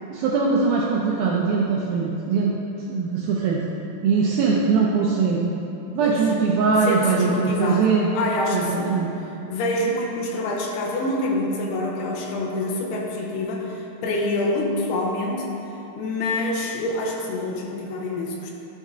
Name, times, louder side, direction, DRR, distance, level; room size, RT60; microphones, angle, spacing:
voice 1, 0.1-2.5 2.9-3.6 4.0-5.5 5.9-8.1 8.5-9.1, right 5 dB, 85° right, -3 dB, 2.1 m, -21 dB
voice 2, 6.8-9.0 9.5-15.5 16.0-18.5, left 2 dB, 75° left, -1 dB, 2.7 m, -26 dB
11.5 x 5.6 x 3.6 m, 2.9 s
omnidirectional pair, 4.9 m